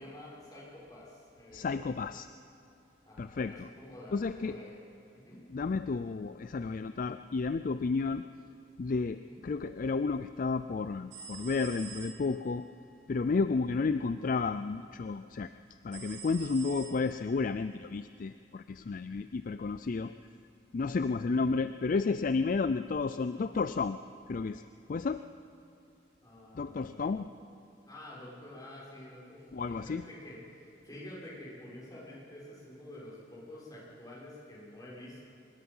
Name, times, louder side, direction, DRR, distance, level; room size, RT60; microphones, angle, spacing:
voice 1, 0.0-1.9 3.1-4.8 5.1-5.4 9.2-9.4 26.2-27.1 27.9-35.3, left 1 dB, 20° left, -6 dB, 6.5 m, -49 dB
voice 2, 1.5-2.3 3.2-3.7 4.1-4.6 5.5-8.2 8.8-12.7 13.1-15.5 15.8-20.1 20.7-24.0 24.3-24.6 24.9-25.2 26.5-27.2 29.5-30.0, left 4 dB, 45° left, 11 dB, 0.4 m, -32 dB
sound 1, 11.1-12.5 15.9-17.4, right 7 dB, 75° right, 1.8 m, -47 dB
24.5 x 21.0 x 5.6 m, 2.7 s
head